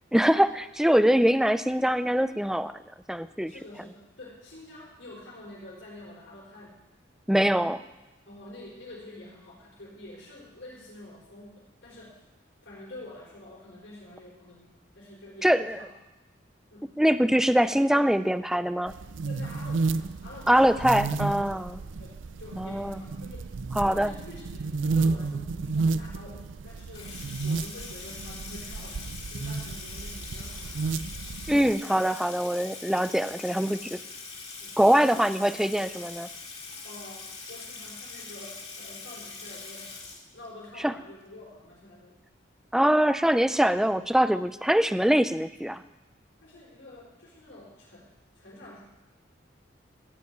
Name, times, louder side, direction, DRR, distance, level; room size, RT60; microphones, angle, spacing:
voice 1, 0.1-2.7 3.1-3.5 7.3-7.8 15.4-15.8 17.0-18.9 20.5-21.7 22.6-23.0 23.8-24.1 31.5-34.0 34.8-36.3 40.8-40.9 42.7-45.8, equal, 5° right, 12 dB, 0.4 m, -23 dB
voice 2, 3.5-6.8 8.3-12.1 12.6-15.9 16.7-16.9 19.2-20.9 21.2-23.5 23.8-29.0 29.3-30.9 33.8-33.9 34.6-35.9 36.8-40.0 40.3-42.3 46.4-48.1 48.4-48.8, left 1 dB, 85° left, -6 dB, 4.1 m, -47 dB
sound 1, 18.9-31.7, right 4 dB, 85° right, 0.5 m, -32 dB
Water tap faucet / Sink (filling or washing), 26.9-40.7, left 4 dB, 35° left, 2.2 m, -42 dB
13.5 x 5.6 x 9.3 m, 1.1 s
head